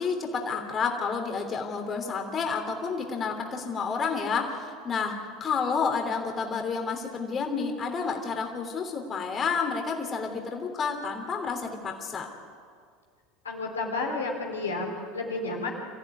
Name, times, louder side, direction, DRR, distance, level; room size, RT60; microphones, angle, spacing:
voice 1, 0.0-12.3, left 5 dB, 35° left, 3 dB, 3.2 m, -30 dB
voice 2, 13.4-15.7, left 3 dB, 85° left, 0 dB, 4.1 m, -31 dB
26.5 x 15.0 x 9.4 m, 2.1 s
hypercardioid pair, 80°, 0 cm